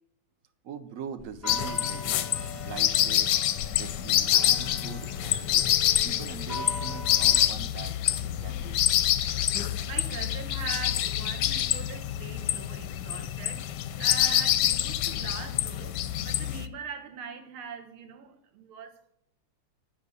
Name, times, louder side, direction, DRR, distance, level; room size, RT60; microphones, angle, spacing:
voice 1, 0.6-2.3 2.6-3.3 3.8-5.7 6.0-8.0 8.2-8.8, right 6 dB, 60° right, 0.9 m, -42 dB
sound 1, 1.2-7.5, left 1 dB, 10° left, 0.9 m, -41 dB
sound 2, 1.5-16.7, left 12 dB, 70° left, 1.0 m, -26 dB
voice 2, 9.9-19.1, right 6 dB, 80° right, 2.0 m, -42 dB
9.5 x 5.7 x 8.2 m
omnidirectional pair, 2.3 m